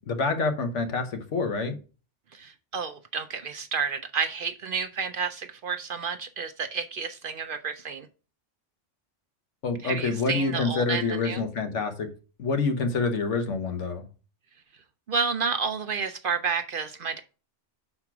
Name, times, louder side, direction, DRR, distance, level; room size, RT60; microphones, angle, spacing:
voice 1, 0.1-1.8 9.6-12.1 12.4-14.1, left 4 dB, 75° left, 7 dB, 1.4 m, -27 dB
voice 2, 2.3-8.1 9.8-11.4 15.1-17.2, right 5 dB, 60° right, 8 dB, 0.6 m, -30 dB
5.9 x 4.3 x 5.8 m, 0.36 s
omnidirectional pair, 1.2 m